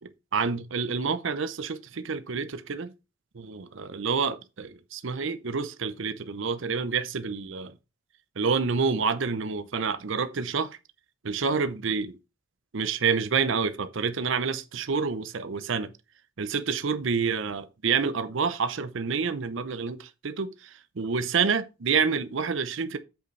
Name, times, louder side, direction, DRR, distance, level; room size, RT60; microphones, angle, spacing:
voice 1, 0.3-2.9 3.3-7.7 8.4-10.8 11.2-12.2 12.7-15.9 16.4-20.5 21.0-23.0, right 5 dB, 70° right, 0.6 m, -28 dB
7.9 x 6.6 x 3.2 m
head